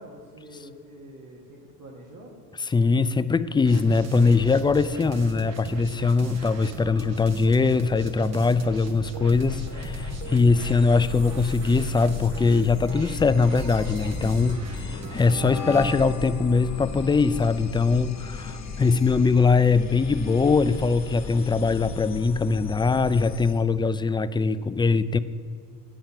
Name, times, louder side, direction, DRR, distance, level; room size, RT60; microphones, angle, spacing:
voice 1, 0.0-2.4, equal, 70° right, -2 dB, 1.5 m, -45 dB
voice 2, 2.7-25.2, left 4 dB, 15° left, 13 dB, 0.3 m, -22 dB
sound 1, 3.6-16.0, right 3 dB, 50° right, 1.0 m, -39 dB
sound 2, 9.3-23.6, left 4 dB, 50° left, 1.4 m, -35 dB
sound 3, 20.9-23.4, left 5 dB, 85° left, 0.7 m, -47 dB
9.1 x 5.7 x 5.6 m, 2.2 s
supercardioid pair, 75°, 34 cm